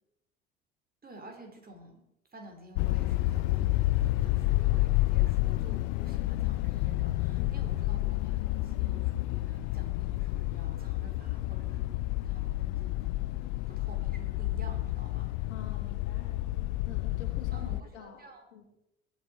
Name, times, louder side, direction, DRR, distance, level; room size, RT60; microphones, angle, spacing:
voice 1, 1.0-2.0 2.3-13.1 13.7-15.5 17.5-18.4, right 1 dB, 25° right, 3 dB, 4.9 m, -51 dB
sound 1, 2.8-17.8, left 17 dB, 60° left, 0.7 m, -30 dB
voice 2, 15.5-16.4 16.8-18.2 18.5-18.6, left 7 dB, 80° left, 3 dB, 3.1 m, -47 dB
22.0 x 9.5 x 4.7 m, 0.81 s
figure-of-eight pair, 65°, 34 cm